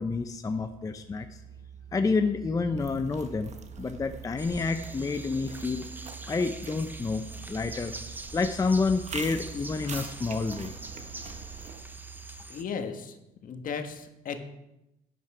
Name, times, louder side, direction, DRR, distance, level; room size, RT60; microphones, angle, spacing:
voice 1, 0.0-1.4 1.9-5.9 6.3-7.2 7.5-7.9 8.3-10.8, left 4 dB, 20° left, 8 dB, 0.6 m, -29 dB
Musical instrument, 0.6-12.7, right 7 dB, 90° right, 1.8 m, -46 dB
sound 1, 2.8-11.8, right 5 dB, 40° right, 1.3 m, -45 dB
sound 2, 4.4-12.6, right 2 dB, 10° right, 0.9 m, -44 dB
voice 2, 12.5-13.2 13.4-14.4, left 6 dB, 55° left, 6 dB, 1.5 m, -35 dB
11.5 x 9.4 x 4.9 m, 0.90 s
cardioid pair, 110°, 17 cm